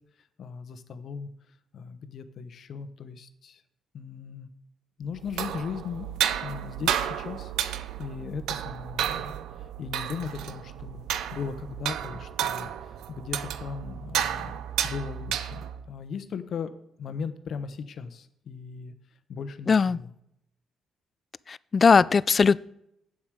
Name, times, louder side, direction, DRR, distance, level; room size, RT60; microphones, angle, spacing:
voice 1, 0.4-1.3 1.7-3.6 3.9-4.5 5.0-6.1 6.4-7.5 8.0-18.9 19.3-20.1, left 6 dB, 60° left, 11 dB, 0.9 m, -38 dB
sound 1, 5.2-15.9, right 10 dB, 85° right, 0.5 m, -32 dB
voice 2, 19.7-20.0 21.5-22.6, left 5 dB, 35° left, 20 dB, 0.3 m, -19 dB
8.8 x 7.3 x 4.8 m, 0.76 s
cardioid pair, 90°, 0 cm